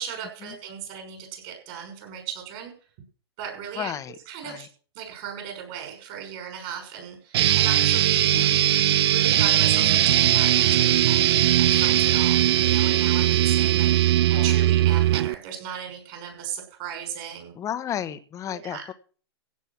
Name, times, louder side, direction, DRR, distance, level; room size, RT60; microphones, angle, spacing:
voice 1, 0.0-2.7 3.4-3.9 4.3-4.7 4.9-8.3 9.1-13.9 14.3-17.5 18.5-18.8, right 8 dB, 45° right, 4 dB, 6.1 m, -37 dB
voice 2, 3.7-4.2 4.4-4.7 8.3-8.6 14.3-14.7 17.5-18.9, left 10 dB, 25° left, 12 dB, 1.2 m, -33 dB
sound 1, 7.3-15.4, right 12 dB, 65° right, 0.5 m, -20 dB
16.0 x 5.4 x 7.3 m, 0.42 s
hypercardioid pair, 125°, 14 cm